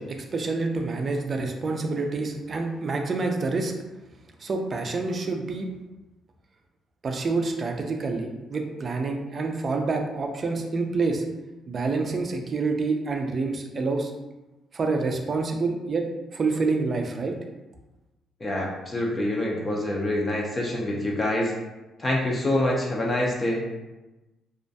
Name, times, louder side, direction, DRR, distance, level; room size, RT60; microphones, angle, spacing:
voice 1, 0.0-3.7 4.4-5.7 7.0-11.2 11.7-14.1 14.7-16.1 16.3-17.3, right 3 dB, 45° right, 3 dB, 0.4 m, -27 dB
voice 2, 18.4-21.5 22.0-23.7, left 1 dB, 30° left, -2 dB, 0.5 m, -26 dB
2.4 x 2.1 x 2.6 m, 1.1 s
cardioid pair, 90°, 0 cm